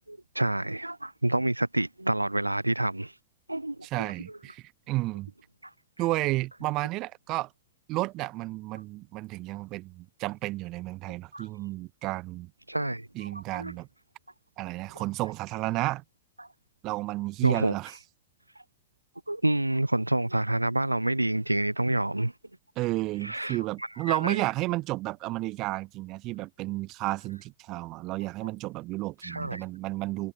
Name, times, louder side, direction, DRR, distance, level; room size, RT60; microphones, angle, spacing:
voice 1, 0.1-3.2 3.5-4.1 5.6-5.7 11.3-11.5 12.7-13.7 16.4-16.5 17.4-17.7 19.3-22.3 23.2-24.4 29.2-29.6, right 1 dB, 85° right, 1.7 m, -28 dB
voice 2, 3.9-5.3 6.0-7.5 7.9-12.5 13.2-13.9 14.6-16.0 16.8-17.9 22.8-30.3, right 19 dB, 40° right, 3.8 m, -32 dB
figure-of-eight pair, 90°, 0 cm